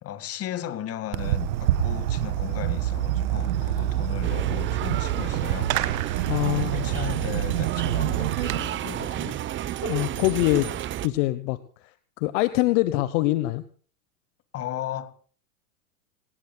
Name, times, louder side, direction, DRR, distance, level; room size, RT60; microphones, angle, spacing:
voice 1, 0.0-5.7 6.1-9.4 14.5-15.1, left 11 dB, 30° left, 2.0 m, -36 dB
Fireworks, 1.1-8.6, right 12 dB, 65° right, 1.8 m, -26 dB
sound 1, 4.2-11.1, right 12 dB, 25° right, 0.9 m, -32 dB
voice 2, 6.3-6.7 9.8-10.7 11.0-11.6 12.2-13.6, left 17 dB, 50° left, 1.1 m, -23 dB
29.5 x 19.0 x 2.3 m
hypercardioid pair, 110°, 45 cm